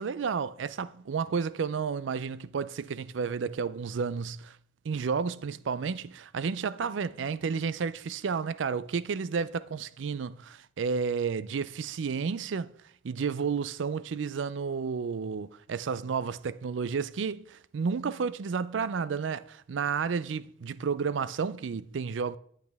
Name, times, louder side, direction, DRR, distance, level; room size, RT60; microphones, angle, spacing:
voice 1, 0.0-4.6 4.8-10.3 10.8-12.7 13.0-22.4, right 5 dB, 90° right, 0.4 m, -31 dB
11.0 x 8.3 x 3.5 m
head